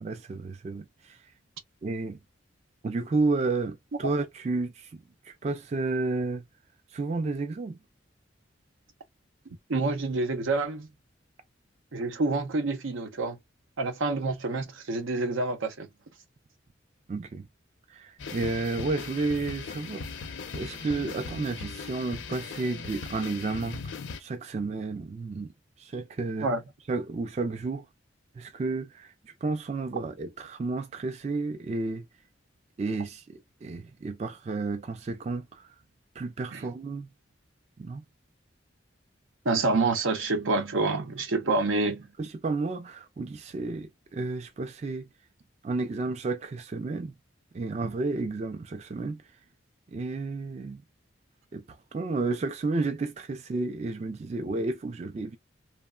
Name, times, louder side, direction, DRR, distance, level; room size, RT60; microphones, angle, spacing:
voice 1, 0.0-1.2 1.8-2.2 2.8-6.4 6.9-7.8 17.1-17.5 17.9-25.5 25.8-26.5 26.9-27.9 28.4-32.1 32.8-35.7 36.2-37.1 37.8-38.0 42.2-45.1 45.6-47.1 47.5-49.2 49.9-50.8 51.5-55.4, right 3 dB, 35° right, 0.3 m, -32 dB
voice 2, 9.7-10.9 11.9-13.4 13.8-15.9 26.4-26.6 36.5-36.7 39.4-42.1, right 3 dB, 85° right, 0.7 m, -27 dB
sound 1, 18.2-24.2, left 5 dB, 70° left, 0.5 m, -39 dB
3.0 x 2.0 x 2.2 m
head